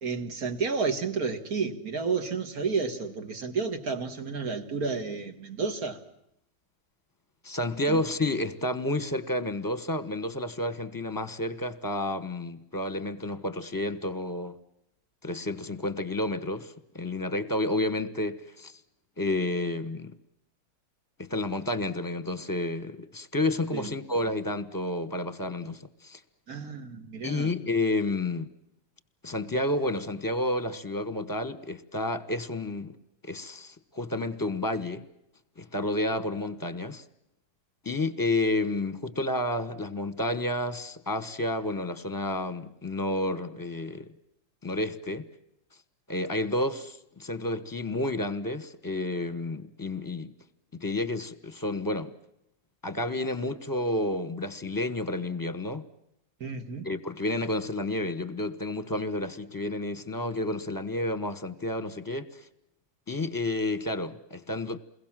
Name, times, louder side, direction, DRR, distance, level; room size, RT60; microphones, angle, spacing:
voice 1, 0.0-6.0 7.9-8.0 23.7-24.0 26.5-27.5 56.4-56.9, right 5 dB, 65° right, 2.3 m, -31 dB
voice 2, 7.4-14.6 15.2-18.8 19.2-20.1 21.2-26.2 27.2-28.5 29.2-33.0 33.2-35.0 35.6-37.0 37.8-44.1 44.6-45.3 46.1-50.3 50.7-52.1 52.8-55.9 56.8-62.5 63.1-64.8, left 2 dB, 15° left, 1.1 m, -30 dB
29.0 x 22.0 x 7.5 m
omnidirectional pair, 1.7 m